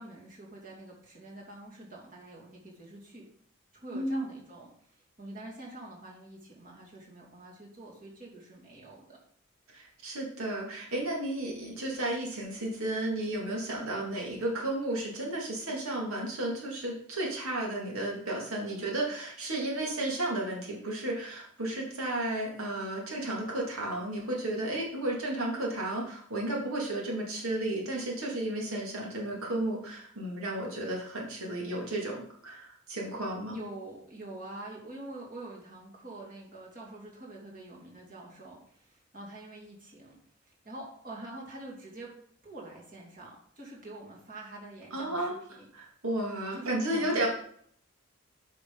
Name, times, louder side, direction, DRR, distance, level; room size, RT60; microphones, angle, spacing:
voice 1, 0.0-3.2 3.7-9.2 33.5-40.2 40.6-42.1 42.4-45.7 46.5-47.3, right 2 dB, 40° right, -3 dB, 2.5 m, -46 dB
voice 2, 3.9-4.2 9.7-33.5 44.9-45.4 45.7-47.3, right 1 dB, 80° right, -1 dB, 2.5 m, -33 dB
9.3 x 5.6 x 3.9 m, 0.62 s
head